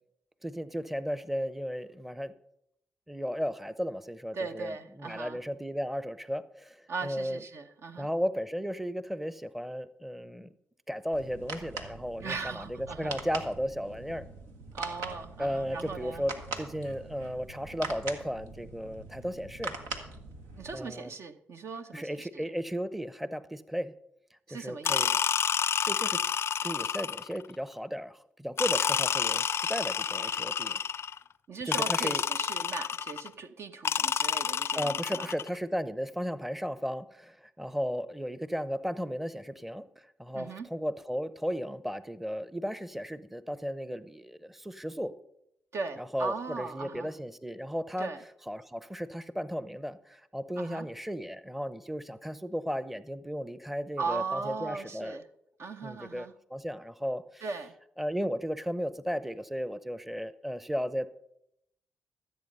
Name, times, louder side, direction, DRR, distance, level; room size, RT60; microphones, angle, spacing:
voice 1, 0.4-2.3 3.1-7.4 8.0-10.5 10.9-14.3 15.4-19.7 20.7-21.1 21.9-23.9 24.5-25.1 25.8-26.2 26.6-30.8 31.7-32.2 34.8-45.1 46.0-48.1 48.5-55.2 55.8-57.4 58.0-61.1, equal, 5° right, 15 dB, 0.7 m, -35 dB
voice 2, 4.3-5.4 6.9-8.1 12.2-13.2 14.7-16.3 20.6-22.4 24.5-25.2 31.5-35.4 40.3-40.7 45.7-47.1 48.0-48.2 50.6-50.9 54.0-55.3 55.6-56.3 57.4-57.7, right 4 dB, 60° right, 8 dB, 0.9 m, -38 dB
sound 1, 11.1-20.8, right 3 dB, 90° right, 1.3 m, -42 dB
sound 2, 24.8-27.4 28.6-31.2 31.7-33.3 33.8-35.5, left 7 dB, 55° left, 0.4 m, -29 dB
14.0 x 7.9 x 5.4 m, 0.78 s
supercardioid pair, 50°, 5 cm